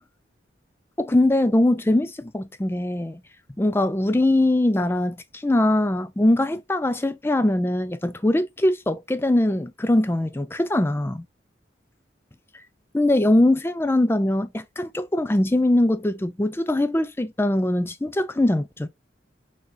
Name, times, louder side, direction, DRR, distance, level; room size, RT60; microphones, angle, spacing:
voice 1, 1.0-3.2 3.6-11.3 12.9-18.9, left 1 dB, 10° left, 0.4 m, -22 dB
4.8 x 4.1 x 2.4 m
head